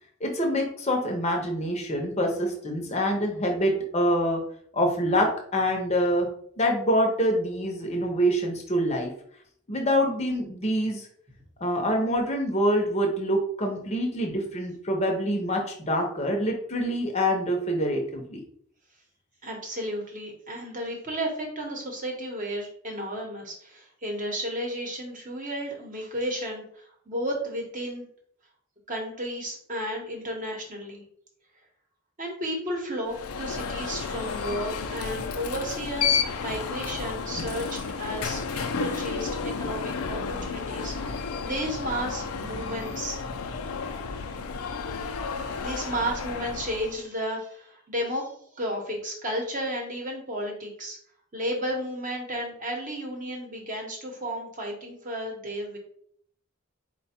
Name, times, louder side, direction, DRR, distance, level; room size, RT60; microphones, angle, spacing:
voice 1, 0.2-4.4 4.7-6.3 6.6-9.1 9.7-11.1 11.6-18.4, equal, 30° left, 2 dB, 0.6 m, -25 dB
voice 2, 19.4-28.1 28.9-31.0 32.2-43.3 45.6-51.0 51.3-55.8, equal, 35° right, 1 dB, 0.9 m, -33 dB
Alarm, 33.1-47.0, left 5 dB, 80° left, 0.4 m, -32 dB
4.3 x 2.2 x 4.2 m, 0.62 s
head